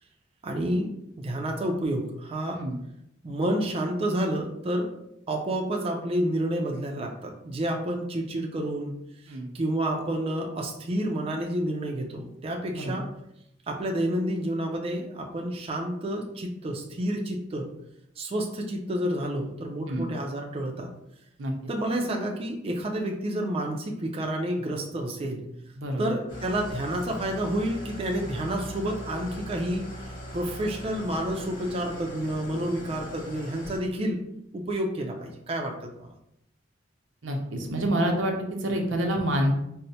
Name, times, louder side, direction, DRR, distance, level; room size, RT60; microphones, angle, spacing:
voice 1, 0.4-2.6 3.2-4.9 5.3-9.0 9.2-13.1 13.7-17.7 18.2-20.9 21.7-25.4 26.0-29.9 30.3-34.2 34.5-36.1, right 1 dB, 30° right, 1 dB, 0.4 m, -29 dB
voice 2, 12.7-13.0 19.9-20.0 21.4-21.5 25.8-26.0 37.2-39.5, right 1 dB, 90° right, 2 dB, 0.6 m, -27 dB
Engine starting / Idling, 26.3-33.8, equal, 90° left, 1.4 m, -40 dB
4.3 x 2.0 x 2.7 m, 0.79 s
head